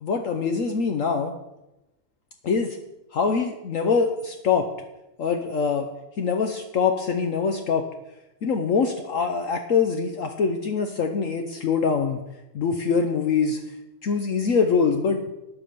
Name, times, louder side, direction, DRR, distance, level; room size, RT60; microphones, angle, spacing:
voice 1, 0.0-1.3 2.4-2.8 3.1-4.7 5.2-5.9 6.2-7.8 8.4-12.2 12.5-13.6 14.0-15.3, left 5 dB, 60° left, 5 dB, 1.1 m, -24 dB
9.3 x 8.6 x 6.8 m, 0.95 s
omnidirectional pair, 1.6 m